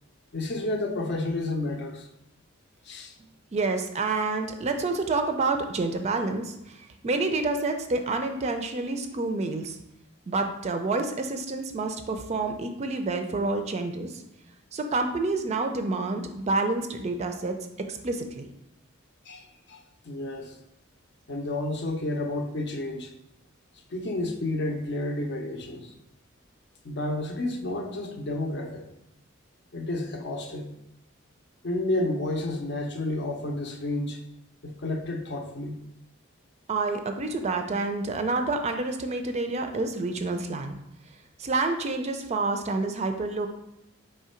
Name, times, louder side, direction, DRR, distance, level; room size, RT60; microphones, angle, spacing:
voice 1, 0.3-2.1 2.8-3.1 19.3-20.6 21.3-23.1 23.9-25.9 26.8-28.9 29.7-30.7 31.6-34.2 34.6-35.8, left 2 dB, 55° left, 4 dB, 0.5 m, -31 dB
voice 2, 3.5-9.8 10.3-14.2 14.7-17.6 17.9-18.5 36.7-40.8 41.4-43.5, right 3 dB, 30° right, 6 dB, 0.3 m, -28 dB
3.7 x 3.2 x 4.3 m, 0.83 s
head